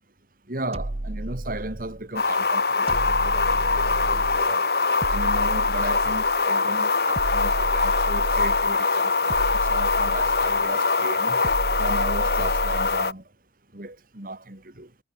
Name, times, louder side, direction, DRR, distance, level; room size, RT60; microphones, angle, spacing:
voice 1, 0.5-4.7 5.1-11.4 11.8-13.2 13.7-14.9, right 2 dB, 50° right, 3.0 m, -36 dB
sound 1, 0.7-2.0 2.9-4.5 5.0-6.4 7.1-8.8 9.3-10.7 11.4-13.0, right 1 dB, 35° right, 0.8 m, -31 dB
sound 2, 2.2-13.1, left 4 dB, 60° left, 2.1 m, -23 dB
head